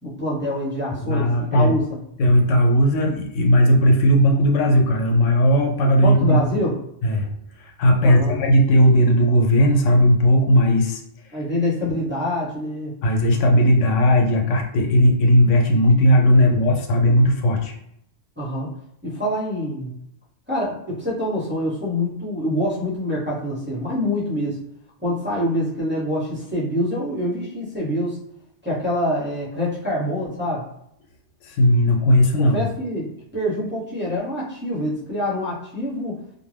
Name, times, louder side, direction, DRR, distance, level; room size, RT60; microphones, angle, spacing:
voice 1, 0.0-1.8 6.0-6.8 8.0-8.4 11.3-12.9 16.4-16.5 18.4-18.7 19.0-19.9 20.5-24.6 25.0-28.2 28.6-30.7 32.4-36.2, left 1 dB, 10° right, -8 dB, 0.7 m, -25 dB
voice 2, 1.0-1.7 2.2-6.4 7.0-7.3 7.6-11.0 13.0-17.7 31.4-32.7, equal, 85° left, 2 dB, 0.9 m, -17 dB
2.5 x 2.2 x 3.2 m, 0.74 s
omnidirectional pair, 1.2 m